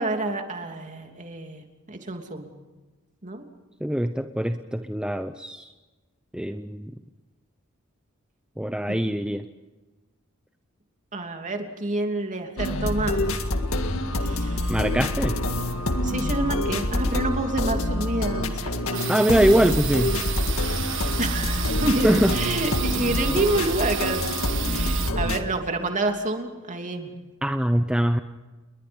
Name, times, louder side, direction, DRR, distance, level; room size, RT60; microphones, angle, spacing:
voice 1, 0.0-2.5 3.2-3.4 8.9-9.0 11.1-13.2 14.2-14.8 16.0-19.2 20.9-24.4 24.7-27.2, right 2 dB, 35° right, 4 dB, 3.0 m, -28 dB
voice 2, 3.8-5.7 6.3-6.9 8.6-9.4 14.7-15.4 19.1-20.2 22.0-22.3 27.4-28.2, equal, 5° right, 8 dB, 0.7 m, -23 dB
sound 1, 12.6-25.4, left 1 dB, 80° left, 1.9 m, -26 dB
sound 2, 18.9-25.1, right 10 dB, 65° right, 1.5 m, -32 dB
29.5 x 22.0 x 5.4 m, 1.2 s
head